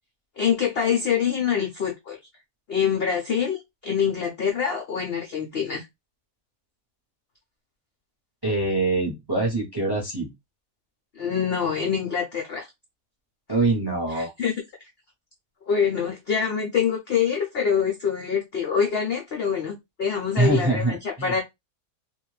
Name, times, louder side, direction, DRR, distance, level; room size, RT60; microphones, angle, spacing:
voice 1, 0.4-2.2 2.7-5.9 11.2-12.7 14.1-14.5 15.7-21.4, left 7 dB, 75° left, 0.5 m, -25 dB
voice 2, 8.4-10.3 13.5-14.3 20.3-21.3, right 2 dB, 25° right, 0.5 m, -24 dB
2.5 x 2.2 x 3.1 m
omnidirectional pair, 1.7 m